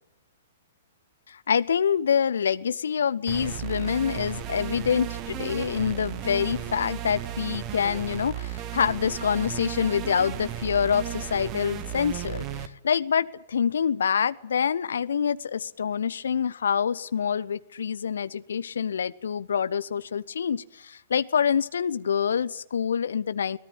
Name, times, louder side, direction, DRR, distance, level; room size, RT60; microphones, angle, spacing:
voice 1, 1.3-23.6, left 7 dB, 60° left, 17 dB, 1.0 m, -26 dB
sound 1, 3.3-12.7, right 11 dB, 30° right, 1.7 m, -34 dB
24.0 x 18.5 x 9.1 m, 0.85 s
figure-of-eight pair, 115°, 0 cm